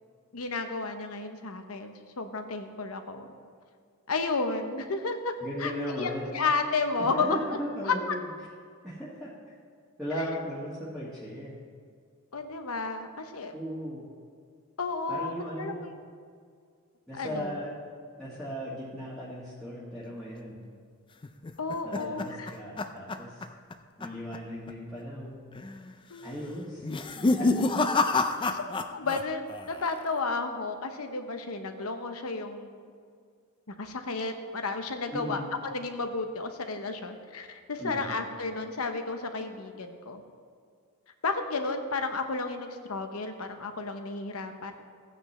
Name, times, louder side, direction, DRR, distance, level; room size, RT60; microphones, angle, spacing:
voice 1, 0.3-3.3 4.1-5.3 5.6-7.4 7.8-8.2 10.1-10.2 12.3-13.5 14.8-16.0 17.1-17.6 21.6-22.5 26.1-26.6 28.5-28.6 28.9-32.8 33.8-40.2 41.2-44.7, left 3 dB, 90° left, 7 dB, 0.9 m, -32 dB
voice 2, 5.4-6.4 7.0-8.3 8.8-9.3 10.0-11.5 13.5-14.0 15.1-15.8 17.1-17.7 18.2-20.7 21.8-23.4 24.0-25.4 26.2-26.8 27.3-27.6 35.1-35.5 37.8-38.2, equal, 5° left, -10 dB, 1.5 m, -37 dB
sound 1, 21.2-23.7 24.0-24.4 24.7-24.8 25.5-25.9 26.8-29.2 29.5-30.1, left 3 dB, 25° left, 0.4 m, -28 dB
15.5 x 9.1 x 3.3 m, 2.1 s
head